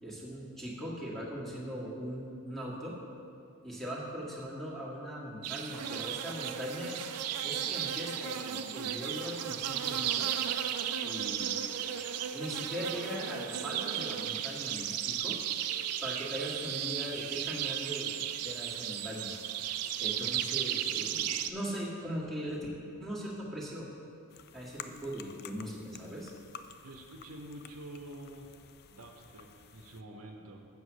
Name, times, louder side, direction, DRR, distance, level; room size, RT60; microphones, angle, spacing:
voice 1, 0.0-3.0 3.6-7.1 7.4-10.3 11.0-11.6 12.3-15.4 16.0-18.1 18.4-19.3 19.7-22.7 23.0-23.9 24.5-26.3, equal, ahead, -6 dB, 1.7 m, -40 dB
sound 1, 5.4-21.5, right 10 dB, 90° right, 0.5 m, -35 dB
sound 2, 24.3-30.0, left 7 dB, 45° left, 0.4 m, -51 dB
voice 2, 26.8-28.6 28.9-30.7, right 1 dB, 70° right, 3 dB, 0.8 m, -47 dB
7.6 x 7.3 x 6.2 m, 2.5 s
head